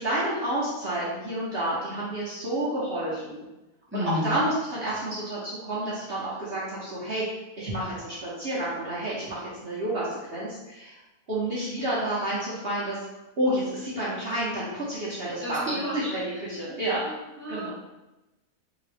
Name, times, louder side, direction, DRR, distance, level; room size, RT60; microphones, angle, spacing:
voice 1, 0.0-3.4 3.9-7.2 7.6-11.0 11.3-13.0 13.4-17.0 17.5-17.7, right 1 dB, 45° right, -9 dB, 1.0 m, -30 dB
voice 2, 3.9-4.4 15.4-16.4 17.0-17.7, left 1 dB, 15° right, -6 dB, 0.5 m, -32 dB
3.7 x 3.0 x 3.4 m, 1.0 s
omnidirectional pair, 1.6 m